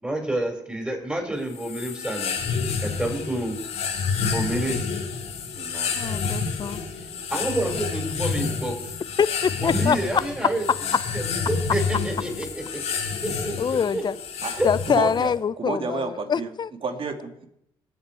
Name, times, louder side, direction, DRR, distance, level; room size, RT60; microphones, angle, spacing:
voice 1, 0.0-3.6 4.2-4.9 5.5-6.0 7.3-8.9 9.6-10.7 11.1-12.8 13.2-14.0 14.6-14.7, right 1 dB, 10° right, 5.1 m, -29 dB
sound 1, 1.5-15.4, left 5 dB, 70° left, 2.1 m, -29 dB
voice 2, 6.0-6.8 9.2-10.2 13.6-14.1 14.6-16.7, left 6 dB, 40° left, 0.6 m, -24 dB
voice 3, 14.9-16.5 16.8-17.5, right 4 dB, 55° right, 2.0 m, -30 dB
21.5 x 7.4 x 4.6 m
supercardioid pair, 65°, 11 cm